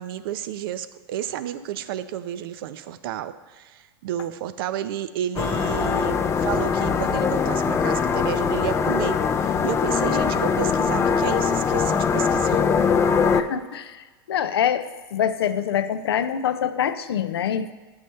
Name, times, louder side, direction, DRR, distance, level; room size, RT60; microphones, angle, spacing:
voice 1, 0.0-12.6, right 10 dB, 70° right, 13 dB, 0.4 m, -31 dB
sound 1, 5.4-13.4, left 6 dB, 20° left, 0.3 m, -22 dB
voice 2, 13.3-17.7, left 9 dB, 90° left, 12 dB, 0.4 m, -25 dB
7.9 x 3.1 x 5.5 m, 1.3 s
hypercardioid pair, 110°, 13 cm